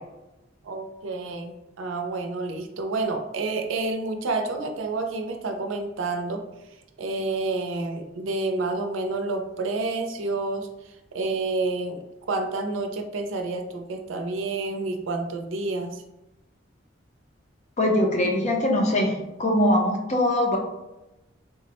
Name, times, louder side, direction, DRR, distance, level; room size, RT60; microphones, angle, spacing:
voice 1, 0.6-6.4 7.0-10.7 11.1-12.0 12.3-16.0, right 3 dB, 85° right, 4 dB, 0.4 m, -29 dB
voice 2, 17.8-20.6, left 1 dB, 35° left, 1 dB, 0.5 m, -22 dB
3.5 x 2.0 x 2.8 m, 0.95 s
head